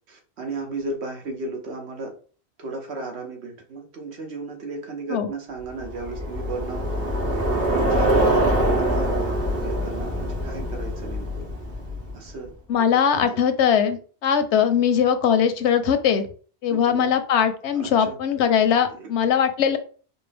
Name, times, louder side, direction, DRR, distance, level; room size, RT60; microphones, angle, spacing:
voice 1, 0.1-2.1 2.6-6.8 7.6-9.3 9.6-11.5 12.1-13.0 16.7-17.1 17.7-18.2 18.9-19.0, right 3 dB, 75° right, 2 dB, 1.2 m, -35 dB
Bicycle, 5.8-12.3, right 1 dB, 60° right, 2.0 m, -24 dB
voice 2, 12.7-16.3 16.6-19.8, left 8 dB, 85° left, 9 dB, 0.9 m, -20 dB
4.6 x 2.2 x 3.3 m, 0.40 s
omnidirectional pair, 1.1 m